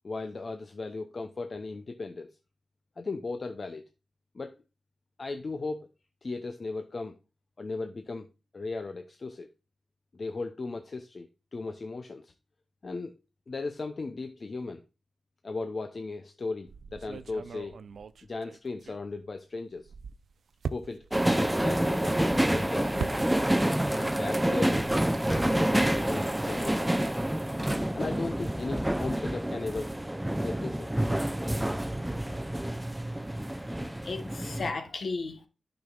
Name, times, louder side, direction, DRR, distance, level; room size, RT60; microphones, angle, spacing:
voice 1, 0.0-2.3 3.0-3.8 4.3-4.6 5.2-5.9 6.2-7.2 7.6-8.3 8.5-9.5 10.1-12.3 12.8-13.1 13.5-14.8 15.4-17.8 18.3-19.9 20.7-21.1 21.4-23.2 24.0-24.9 25.4-26.9 27.9-30.0 30.4-31.3, left 3 dB, 55° left, 0.6 m, -37 dB
sound 1, 16.7-19.4 19.7-23.8 24.0-25.3, right 6 dB, 90° right, 0.3 m, -41 dB
sound 2, 21.1-34.7, right 1 dB, 10° right, 0.5 m, -28 dB
voice 2, 33.7-35.5, left 3 dB, 70° left, 1.2 m, -35 dB
9.3 x 6.1 x 2.4 m
cardioid pair, 65°, 0 cm